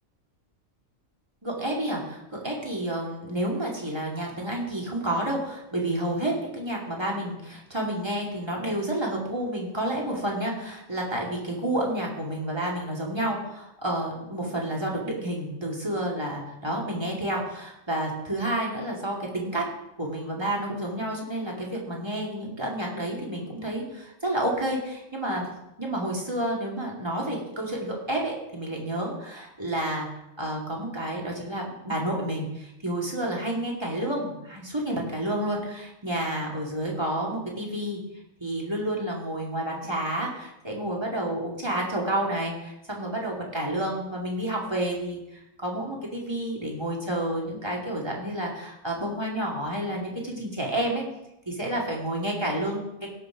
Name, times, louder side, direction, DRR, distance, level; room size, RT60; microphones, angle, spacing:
voice 1, 1.4-19.6 20.0-25.5 25.8-30.1 30.4-38.0 38.4-51.0 51.4-52.8, right 1 dB, 20° right, -3 dB, 2.5 m, -30 dB
17.0 x 6.5 x 5.0 m, 0.88 s
omnidirectional pair, 1.4 m